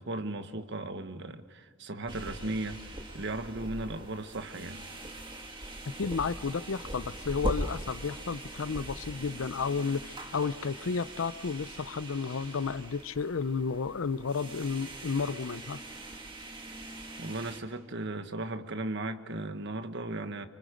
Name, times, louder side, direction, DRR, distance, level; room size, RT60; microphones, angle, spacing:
voice 1, 0.0-4.9 17.2-20.5, right 2 dB, 60° right, 1.4 m, -36 dB
sound 1, 2.1-17.6, right 1 dB, 25° right, 2.0 m, -41 dB
voice 2, 6.0-15.8, left 5 dB, 80° left, 0.6 m, -32 dB
29.5 x 25.5 x 5.2 m
head